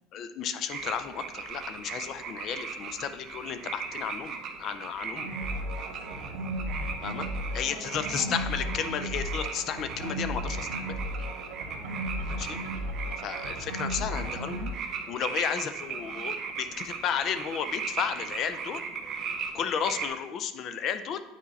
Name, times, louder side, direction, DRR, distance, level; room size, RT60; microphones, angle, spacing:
voice 1, 0.1-5.3 7.0-7.3 7.5-11.0 12.4-12.6 13.2-14.7 15.1-18.8 19.5-21.2, left 8 dB, 35° left, 11 dB, 0.4 m, -33 dB
sound 1, 0.7-20.1, right 6 dB, 30° right, 0.7 m, -38 dB
sound 2, 5.2-14.7, equal, 75° right, 1.5 m, -35 dB
voice 2, 6.0-6.7 7.6-8.7 11.7-12.6 13.9-14.4 15.9-16.2, left 1 dB, 70° left, -7 dB, 2.8 m, -47 dB
8.5 x 4.3 x 4.0 m, 0.94 s
cardioid pair, 175°, 0 cm